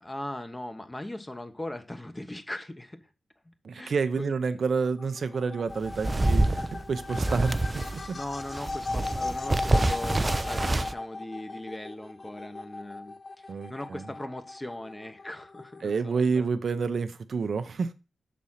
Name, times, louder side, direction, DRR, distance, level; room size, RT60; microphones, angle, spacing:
voice 1, 0.0-3.1 3.7-4.3 8.1-16.5, left 1 dB, 20° left, 1.2 m, -39 dB
voice 2, 3.6-8.2 13.5-14.0 15.8-17.9, right 5 dB, 70° right, 0.7 m, -29 dB
sound 1, 4.8-16.1, left 3 dB, 50° left, 0.5 m, -38 dB
sound 2, 5.7-8.1 8.4-10.9, right 2 dB, 30° right, 0.5 m, -27 dB
6.3 x 4.2 x 5.6 m
cardioid pair, 45°, 0 cm